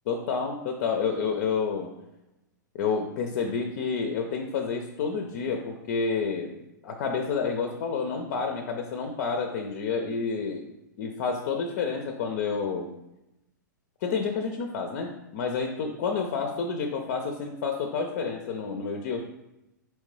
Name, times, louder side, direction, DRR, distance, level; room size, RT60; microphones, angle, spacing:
voice 1, 0.1-1.9 2.7-6.5 6.8-10.6 11.0-12.9 14.0-19.2, left 5 dB, 50° left, 3 dB, 0.5 m, -29 dB
4.2 x 3.1 x 3.2 m, 0.91 s
figure-of-eight pair, 105°, 11 cm